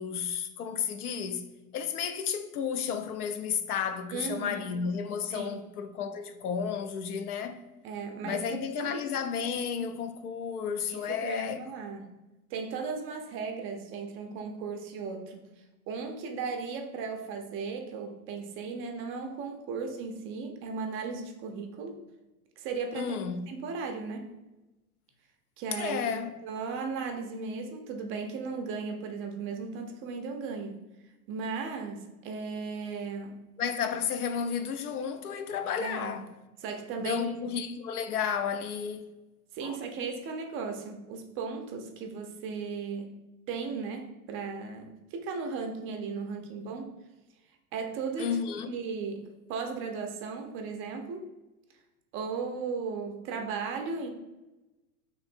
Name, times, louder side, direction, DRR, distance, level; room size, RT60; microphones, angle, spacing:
voice 1, 0.0-1.5 1.7-7.6 8.2-11.6 22.9-23.4 25.7-26.3 33.6-36.3 37.0-39.1 39.6-39.8 48.2-48.7, left 7 dB, 80° left, 0.6 m, -32 dB
voice 2, 4.1-4.8 5.3-5.6 7.8-9.0 10.9-12.1 12.5-15.5 15.9-21.9 22.6-23.2 23.5-24.3 25.6-26.1 26.4-30.8 31.3-33.4 35.8-36.3 36.6-37.3 39.5-43.1 43.5-46.9 47.7-48.4 48.7-51.3 52.1-54.1, right 5 dB, 30° right, 0.4 m, -36 dB
3.0 x 2.5 x 4.2 m
hypercardioid pair, 100°, 44 cm